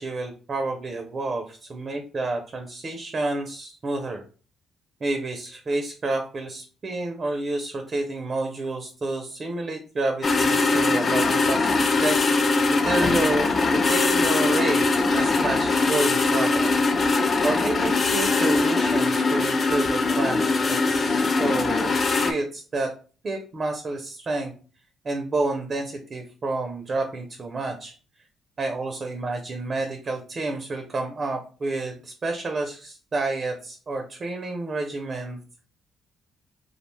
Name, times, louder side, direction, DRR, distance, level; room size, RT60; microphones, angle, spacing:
voice 1, 0.0-4.2 5.0-12.5 12.8-14.9 15.1-16.7 17.4-22.9 23.2-24.5 25.1-27.9 28.6-35.4, right 2 dB, 40° right, 5 dB, 0.4 m, -29 dB
sound 1, 10.2-22.3, left 3 dB, 40° left, 0.3 m, -21 dB
2.3 x 2.1 x 3.1 m, 0.38 s
cardioid pair, 90°, 0 cm